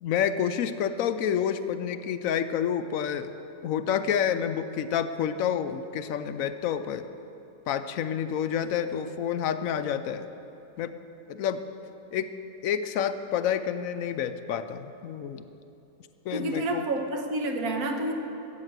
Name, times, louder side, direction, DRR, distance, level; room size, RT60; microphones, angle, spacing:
voice 1, 0.0-3.3 3.6-7.1 7.7-10.3 10.8-10.9 11.3-11.6 12.1-12.3 12.6-15.5 16.3-16.9, left 8 dB, 75° left, 11 dB, 1.0 m, -29 dB
voice 2, 16.3-18.1, right 2 dB, 85° right, 4 dB, 1.6 m, -29 dB
13.5 x 8.4 x 6.6 m, 2.9 s
omnidirectional pair, 1.5 m